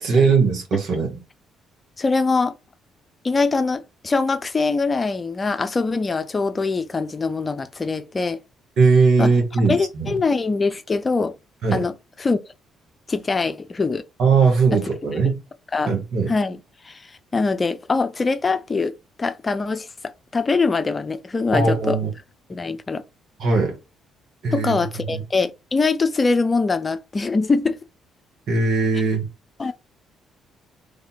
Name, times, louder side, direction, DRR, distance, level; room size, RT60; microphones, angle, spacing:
voice 1, 0.0-1.2 8.8-10.1 11.6-11.8 14.2-15.4 15.9-16.3 21.5-22.1 23.4-23.8 24.4-24.8 25.1-25.2 28.5-29.3, right 4 dB, 60° right, 1.6 m, -19 dB
voice 2, 2.0-2.6 3.2-8.4 9.2-9.3 9.7-11.4 11.7-11.9 12.2-12.4 13.1-14.0 14.7-14.8 15.2-15.4 15.7-15.9 16.3-16.6 16.8-19.9 20.3-22.0 22.5-23.0 24.5-27.8 29.6-29.7, left 4 dB, 30° left, 0.5 m, -23 dB
3.5 x 2.7 x 4.2 m
figure-of-eight pair, 45°, 0 cm